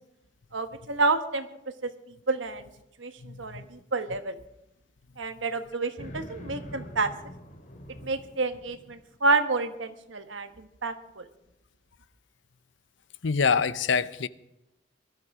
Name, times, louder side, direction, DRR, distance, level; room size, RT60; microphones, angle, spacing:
voice 1, 0.5-1.5 1.8-1.9 2.3-2.6 3.0-4.4 5.2-7.1 8.0-11.3, right 3 dB, 90° right, 1.4 m, -29 dB
voice 2, 3.2-3.6 13.2-14.3, left 5 dB, 80° left, 0.7 m, -26 dB
sound 1, 6.0-9.0, equal, 45° left, 2.4 m, -44 dB
20.0 x 13.0 x 4.9 m
head